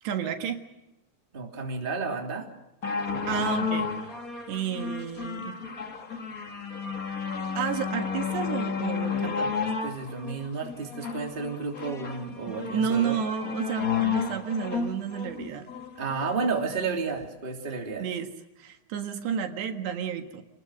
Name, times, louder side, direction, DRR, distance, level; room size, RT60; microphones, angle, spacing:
voice 1, 0.0-0.6 3.3-4.1 4.5-5.6 7.6-9.7 12.5-15.7 18.0-20.4, right 8 dB, 70° right, 6 dB, 3.6 m, -31 dB
voice 2, 1.3-2.5 9.8-13.2 16.0-18.1, right 4 dB, 15° right, 1 dB, 2.5 m, -32 dB
sound 1, 2.8-16.4 17.2-17.3, left 6 dB, 75° left, 0.7 m, -32 dB
28.5 x 20.0 x 6.5 m, 0.97 s
omnidirectional pair, 5.2 m